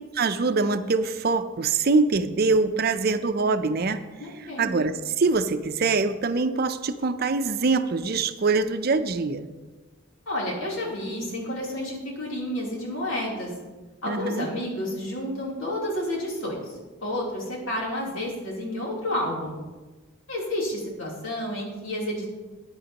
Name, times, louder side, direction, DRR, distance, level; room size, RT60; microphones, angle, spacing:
voice 1, 0.1-4.1 4.6-9.5 14.1-14.5, right 3 dB, 50° right, 10 dB, 0.5 m, -24 dB
voice 2, 4.2-4.7 10.2-13.5 14.0-19.6 20.3-22.2, left 1 dB, 85° left, -4 dB, 3.3 m, -30 dB
14.5 x 9.8 x 2.9 m, 1.2 s
head